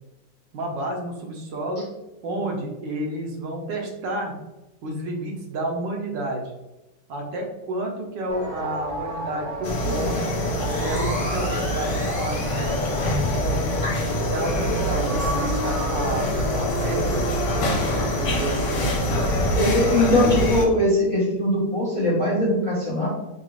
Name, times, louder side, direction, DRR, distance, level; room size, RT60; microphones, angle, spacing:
voice 1, 0.5-1.9 2.2-4.4 4.8-6.5 7.1-10.2 10.6-13.7 14.3-17.2 17.9-19.3 20.0-20.5, right 1 dB, 80° right, 0 dB, 1.6 m, -30 dB
sound 1, 8.3-19.7, right 1 dB, 35° right, 0.6 m, -33 dB
sound 2, 9.6-20.7, left 1 dB, 75° left, 1.4 m, -25 dB
sound 3, 10.5-13.2, right 1 dB, 5° left, 0.9 m, -36 dB
voice 2, 19.5-23.1, left 1 dB, 45° left, -5 dB, 0.4 m, -21 dB
5.6 x 2.4 x 3.1 m, 0.98 s
omnidirectional pair, 1.9 m